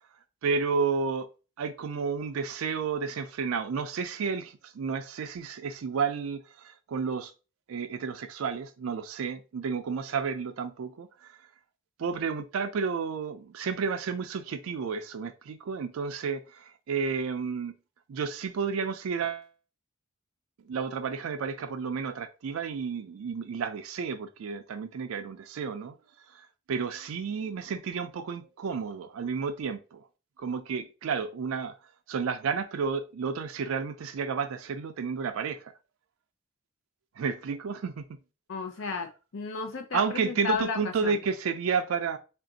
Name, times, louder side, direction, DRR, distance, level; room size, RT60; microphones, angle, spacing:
voice 1, 0.4-1.3 1.6-7.3 7.7-11.4 12.0-17.7 18.1-19.5 20.6-26.0 26.3-30.1 30.4-31.8 32.1-35.7 37.2-38.2 39.9-42.2, right 5 dB, 85° right, 0.4 m, -31 dB
voice 2, 38.5-39.1 39.3-41.2, left 5 dB, 75° left, 0.6 m, -33 dB
3.4 x 2.5 x 3.9 m
head